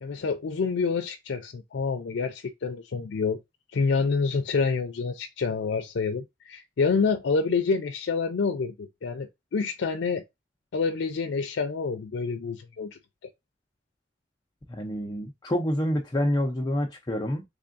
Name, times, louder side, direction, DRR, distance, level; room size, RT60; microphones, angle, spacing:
voice 1, 0.0-3.4 3.7-10.2 10.7-13.0, left 4 dB, 90° left, 0.4 m, -27 dB
voice 2, 14.7-17.4, left 1 dB, 20° left, 0.5 m, -27 dB
3.5 x 3.5 x 2.5 m
head